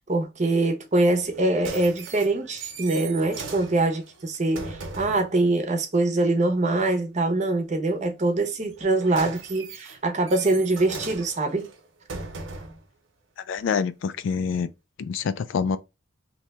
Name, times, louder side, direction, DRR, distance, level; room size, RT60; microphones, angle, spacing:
voice 1, 0.1-11.7, right 2 dB, 35° right, 0.7 m, -24 dB
sound 1, 1.2-5.3 8.7-12.9 13.6-13.7, right 4 dB, 75° right, 0.8 m, -39 dB
voice 2, 13.5-14.7 15.0-15.8, left 6 dB, 70° left, 0.3 m, -26 dB
2.8 x 2.2 x 4.0 m
head